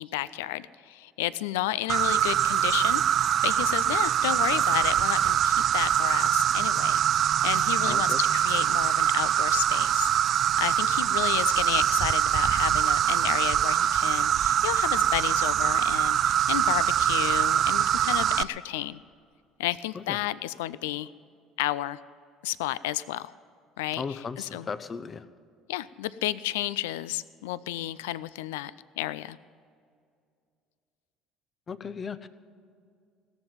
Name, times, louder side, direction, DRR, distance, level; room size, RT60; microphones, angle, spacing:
voice 1, 0.0-3.0 3.4-10.1 10.6-19.0 19.6-21.1 21.6-22.0 22.4-23.3 23.8-24.0 24.4-24.6 25.7-28.7 29.0-29.4, left 15 dB, 75° left, 18 dB, 0.3 m, -32 dB
Insect, 1.9-18.4, right 10 dB, 50° right, 0.4 m, -24 dB
voice 2, 7.8-8.2 19.9-20.2 23.9-25.3 31.7-32.3, left 5 dB, 35° left, 13 dB, 0.8 m, -36 dB
17.5 x 7.3 x 9.2 m, 2.3 s
hypercardioid pair, 60°, 0 cm